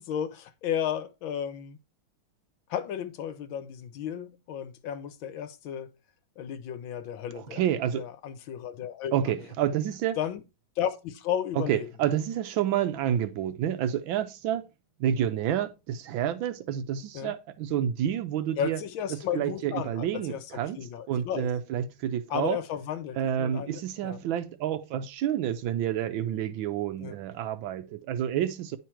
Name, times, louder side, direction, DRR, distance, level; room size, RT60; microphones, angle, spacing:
voice 1, 0.0-1.8 2.7-5.9 6.4-7.6 7.9-9.2 10.2-10.4 10.8-11.9 17.1-17.3 18.6-21.5 22.3-24.2 27.0-27.1, left 9 dB, 75° left, 1.5 m, -33 dB
voice 2, 7.3-8.1 9.1-10.2 11.6-14.7 15.0-18.8 19.1-20.8 21.1-22.6 23.2-28.8, right 10 dB, 75° right, 1.4 m, -29 dB
10.0 x 3.8 x 4.4 m
omnidirectional pair, 2.2 m